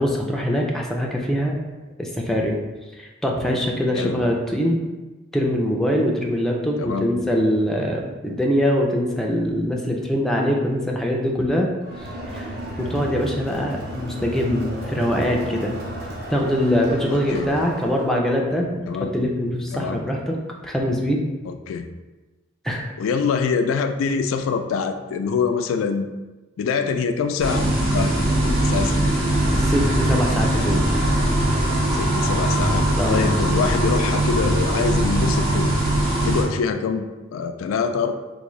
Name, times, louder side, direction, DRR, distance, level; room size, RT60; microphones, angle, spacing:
voice 1, 0.0-1.5 2.0-2.6 3.0-4.8 5.3-11.7 12.3-12.5 12.8-15.7 16.3-18.8 19.1-20.4 20.6-21.2 22.6-22.9 29.6-30.9 33.0-33.3, equal, ahead, -1 dB, 0.4 m, -23 dB
voice 2, 6.8-7.1 17.1-17.5 18.8-19.1 19.7-20.0 21.4-21.9 23.0-26.1 26.6-28.2 28.6-29.1 31.9-35.7 36.0-38.1, left 5 dB, 85° left, 8 dB, 0.3 m, -25 dB
Crowd, 11.8-18.1, right 1 dB, 50° right, 0.7 m, -33 dB
sound 1, 27.4-36.4, right 1 dB, 75° right, 1.3 m, -20 dB
3.6 x 2.6 x 3.1 m, 1.2 s
head